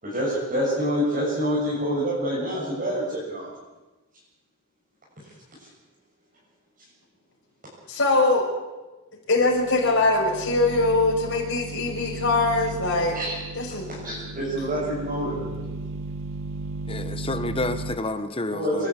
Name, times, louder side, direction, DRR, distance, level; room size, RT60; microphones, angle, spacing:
voice 1, 0.0-3.5 5.6-5.7 13.1-13.3 14.0-15.4 18.5-18.9, equal, 40° right, -7 dB, 7.3 m, -26 dB
voice 2, 7.9-8.4 9.3-13.2 13.5-13.9 15.3-15.4, left 2 dB, 60° left, 0 dB, 6.1 m, -22 dB
sound 1, 9.4-18.0, right 3 dB, 60° right, 1.4 m, -35 dB
voice 3, 16.9-18.9, left 2 dB, 25° left, 9 dB, 1.3 m, -29 dB
27.0 x 13.0 x 8.4 m, 1.1 s
head